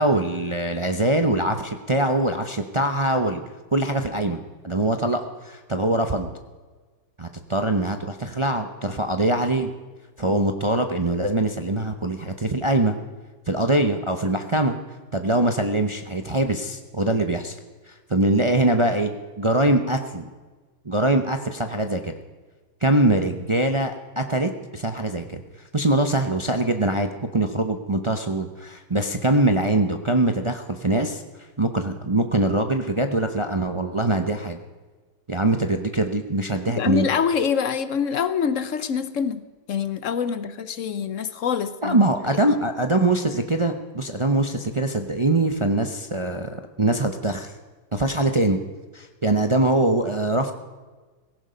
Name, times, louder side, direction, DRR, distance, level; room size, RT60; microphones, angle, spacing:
voice 1, 0.0-3.4 3.7-6.3 7.2-9.7 10.2-13.0 13.5-14.8 15.1-17.5 17.9-20.3 20.8-22.1 22.8-25.4 25.7-31.2 31.6-34.6 35.3-37.1 41.8-47.5 47.9-48.6 48.9-50.5, right 1 dB, 35° right, 6 dB, 0.5 m, -23 dB
voice 2, 36.7-39.4 39.7-42.0, left 7 dB, 55° left, 12 dB, 1.0 m, -25 dB
17.0 x 15.5 x 5.2 m, 1.3 s
omnidirectional pair, 1.9 m